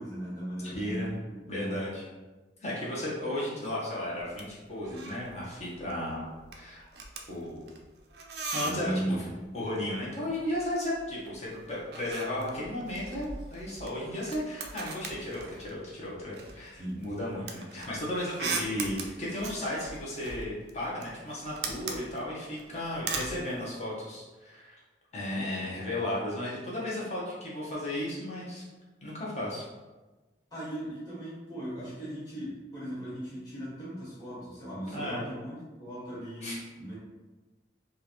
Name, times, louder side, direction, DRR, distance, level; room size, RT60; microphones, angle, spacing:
voice 1, 0.0-1.9 8.6-9.4 16.8-17.1 18.4-18.5 30.5-36.9, right 1 dB, 20° left, -11 dB, 1.5 m, -37 dB
voice 2, 0.6-1.1 1.5-2.0 2.6-6.2 6.5-6.9 7.3-7.8 8.5-9.2 9.5-24.7 25.1-28.6 29.0-29.6 34.9-35.2 36.4-36.6, left 1 dB, 35° left, -6 dB, 0.9 m, -34 dB
sound 1, 4.2-4.5 4.7-5.3 5.6-5.9 6.2-9.1 10.3-11.3 11.6-15.9 16.3-23.4, right 4 dB, 60° right, 0.4 m, -39 dB
3.8 x 2.5 x 3.0 m, 1.2 s
head